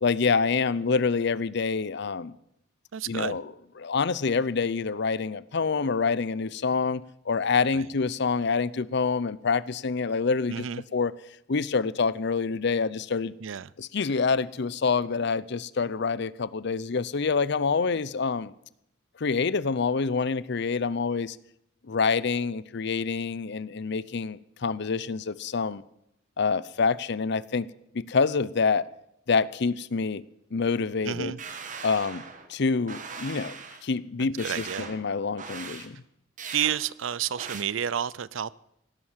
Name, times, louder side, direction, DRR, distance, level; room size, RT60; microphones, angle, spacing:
voice 1, 0.0-2.4 3.1-3.5 3.8-10.6 10.9-11.1 11.5-13.3 13.8-18.5 19.2-21.4 21.8-25.8 26.4-27.7 27.9-28.8 29.3-30.2 30.5-31.3 31.8-32.2 32.5-33.6 33.8-36.0, left 4 dB, 60° left, 19 dB, 0.6 m, -26 dB
voice 2, 2.9-3.4 7.7-7.9 10.5-10.8 13.4-13.7 31.0-31.4 34.4-34.9 36.5-38.5, right 9 dB, 85° right, 22 dB, 0.5 m, -30 dB
sound 1, 31.4-32.5 32.9-33.8 34.4-35.0 35.4-35.9 36.4-36.8 37.4-37.6, right 5 dB, 40° right, 1.7 m, -39 dB
17.0 x 11.0 x 7.4 m, 0.79 s
head